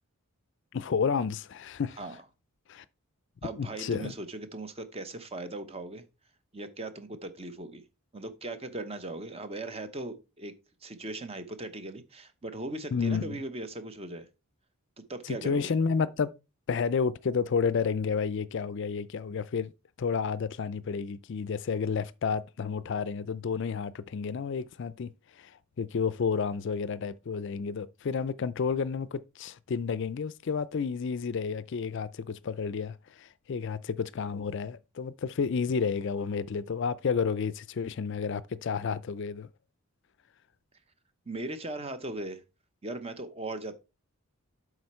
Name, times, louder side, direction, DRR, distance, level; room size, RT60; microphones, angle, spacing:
voice 1, 0.7-2.0 2.7-2.8 3.4-4.1 12.9-13.4 15.2-16.3 16.7-19.7 20.0-39.5, left 5 dB, 55° left, 0.4 m, -31 dB
voice 2, 3.4-6.0 6.5-7.8 8.1-10.5 10.8-14.3 15.1-15.7 41.3-42.4 42.8-43.7, right 2 dB, 25° right, 0.8 m, -38 dB
7.9 x 5.0 x 4.3 m
head